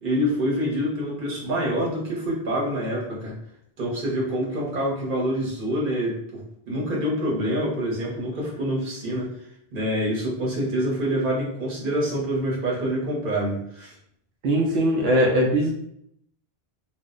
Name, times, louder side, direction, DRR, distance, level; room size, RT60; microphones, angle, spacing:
voice 1, 0.0-3.3 3.8-9.3 9.7-13.9, equal, 55° right, -4 dB, 1.1 m, -26 dB
voice 2, 14.4-15.7, equal, 85° right, -2 dB, 0.8 m, -20 dB
2.4 x 2.1 x 3.6 m, 0.73 s
omnidirectional pair, 1.0 m